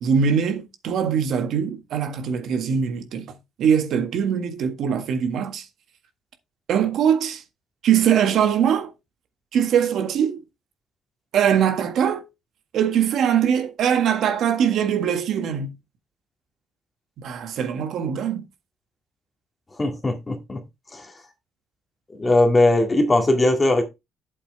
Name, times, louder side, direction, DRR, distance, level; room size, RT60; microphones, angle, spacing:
voice 1, 0.0-3.3 3.6-5.7 6.7-7.4 7.8-8.9 9.5-10.4 11.3-12.2 12.7-15.7 17.2-18.5, right 8 dB, 65° right, 1.7 m, -22 dB
voice 2, 19.8-20.6 20.9-21.1 22.2-23.8, left 2 dB, 20° left, 2.1 m, -19 dB
8.6 x 7.6 x 3.3 m
cardioid pair, 130°, 0 cm